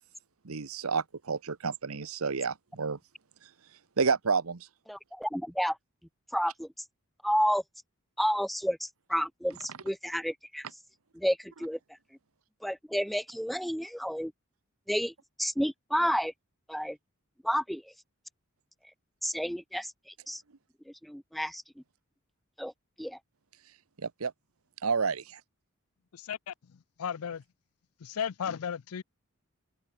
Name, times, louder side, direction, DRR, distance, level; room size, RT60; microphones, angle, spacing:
voice 1, 0.4-3.0 4.0-4.7 24.0-24.3 24.8-25.4, right 5 dB, 80° right, 1.0 m, -30 dB
voice 2, 4.9-5.8 6.3-6.7 7.2-7.6 8.2-10.7 11.1-11.8 12.6-14.3 14.9-16.3 16.7-17.0 17.4-17.8 19.2-19.9 20.3-20.4 21.0-21.6 22.6-22.7 23.0-23.2, equal, ahead, 0.6 m, -30 dB
voice 3, 26.1-27.4 28.0-29.0, left 8 dB, 90° left, 0.5 m, -35 dB
head